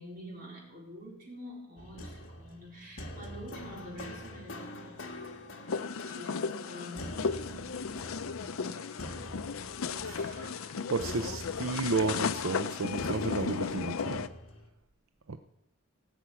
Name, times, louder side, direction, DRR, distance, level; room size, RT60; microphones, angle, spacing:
voice 1, 0.0-5.1 5.6-7.8 8.7-9.0 10.0-10.8, equal, 45° right, -3 dB, 4.3 m, -47 dB
sound 1, 1.8-14.7, left 1 dB, 65° left, 1.6 m, -45 dB
sound 2, 5.7-14.3, left 5 dB, 85° left, 0.6 m, -35 dB
voice 2, 10.9-14.3 15.3-15.4, right 4 dB, 85° right, 8 dB, 0.7 m, -32 dB
17.5 x 6.1 x 8.3 m, 0.80 s
head